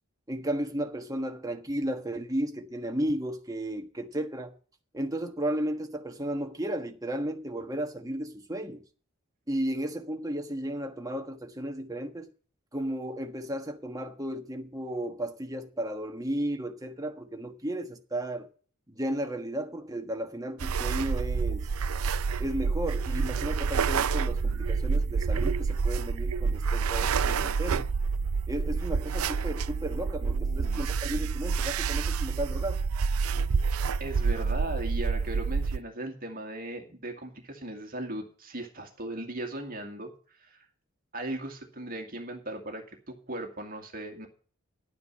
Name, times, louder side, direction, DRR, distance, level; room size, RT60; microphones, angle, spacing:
voice 1, 0.3-4.5 4.9-8.8 9.5-12.3 12.7-18.5 18.9-21.7 22.4-27.9 28.5-32.8, right 1 dB, 15° right, 1.3 m, -34 dB
sound 1, 20.6-35.8, right 5 dB, 85° right, 0.5 m, -28 dB
voice 2, 30.2-30.9 34.0-40.7 41.1-44.3, right 1 dB, 40° right, 2.1 m, -38 dB
11.5 x 9.5 x 5.5 m
head